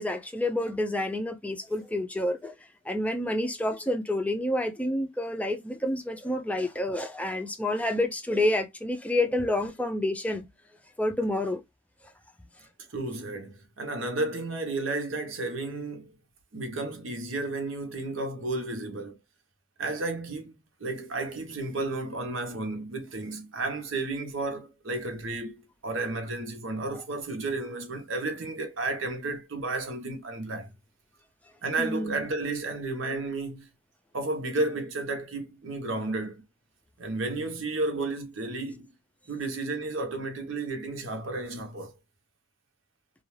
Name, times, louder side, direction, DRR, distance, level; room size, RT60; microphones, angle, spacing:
voice 1, 0.0-2.5 2.9-10.5 11.0-11.6 26.9-27.0 31.8-32.2, left 1 dB, 5° left, 0.4 m, -29 dB
voice 2, 12.9-16.2 16.5-19.2 19.8-20.5 20.8-30.7 31.6-33.7 34.1-36.4 37.0-38.9 39.3-41.9, right 2 dB, 85° right, 0.8 m, -32 dB
2.3 x 2.3 x 3.1 m
head